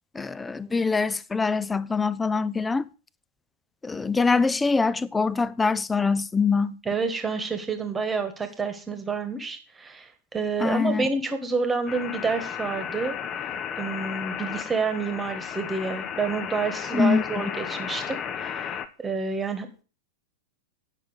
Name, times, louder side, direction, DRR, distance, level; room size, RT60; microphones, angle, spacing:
voice 1, 0.1-2.9 3.8-6.8 10.6-11.1 16.9-17.2, left 4 dB, 10° left, 0.5 m, -24 dB
voice 2, 6.8-13.2 13.8-19.7, right 4 dB, 15° right, 1.6 m, -29 dB
sound 1, 11.9-18.9, left 8 dB, 30° left, 0.8 m, -34 dB
9.7 x 6.0 x 6.3 m
figure-of-eight pair, 95°, 0 cm